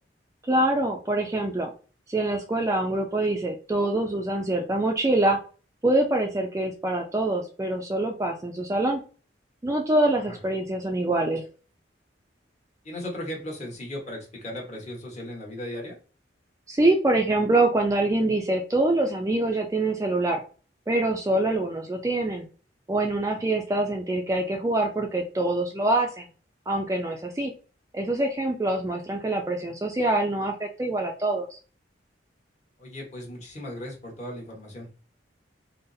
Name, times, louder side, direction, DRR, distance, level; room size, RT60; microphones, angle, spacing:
voice 1, 0.4-1.7 2.1-5.4 5.8-9.0 9.6-11.4 16.7-20.4 20.9-22.5 22.9-26.3 26.7-27.5 27.9-31.6, right 2 dB, 15° right, 2 dB, 0.3 m, -25 dB
voice 2, 12.8-16.0 23.3-23.4 32.8-34.9, left 1 dB, 35° left, -1 dB, 1.2 m, -37 dB
3.8 x 2.0 x 2.6 m, 0.37 s
head